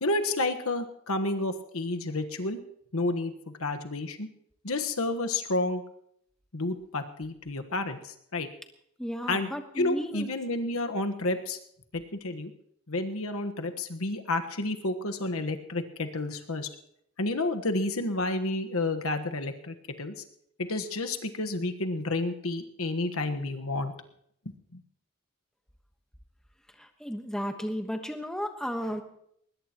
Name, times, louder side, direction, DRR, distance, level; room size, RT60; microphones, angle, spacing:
voice 1, 0.0-2.6 2.9-4.3 4.6-5.8 6.5-8.5 9.3-9.5 9.7-11.6 11.9-12.5 12.9-16.7 17.2-20.1 20.6-23.9 24.7-24.8, left 2 dB, 75° left, 6 dB, 1.3 m, -30 dB
voice 2, 9.0-10.3 26.8-29.0, equal, 5° left, 4 dB, 1.2 m, -34 dB
21.5 x 20.0 x 3.0 m, 0.72 s
head